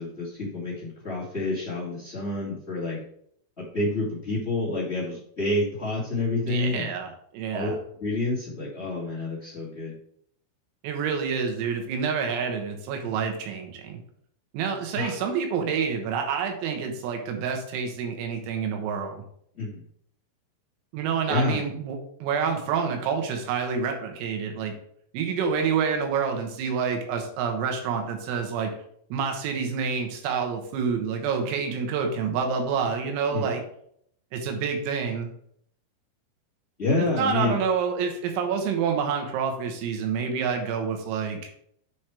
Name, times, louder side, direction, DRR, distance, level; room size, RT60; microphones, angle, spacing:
voice 1, 0.0-3.0 3.6-6.9 7.5-7.7 8.0-9.9 14.9-15.3 19.5-19.8 21.3-21.6 33.3-33.5 36.8-37.6, left 2 dB, 40° left, -7 dB, 0.9 m, -28 dB
voice 2, 6.4-7.8 10.8-14.0 14.5-19.2 20.9-24.7 25.1-28.7 29.1-33.6 34.3-35.3 37.0-41.5, right 6 dB, 85° right, 4 dB, 3.9 m, -28 dB
8.3 x 4.5 x 4.8 m, 0.68 s
omnidirectional pair, 5.9 m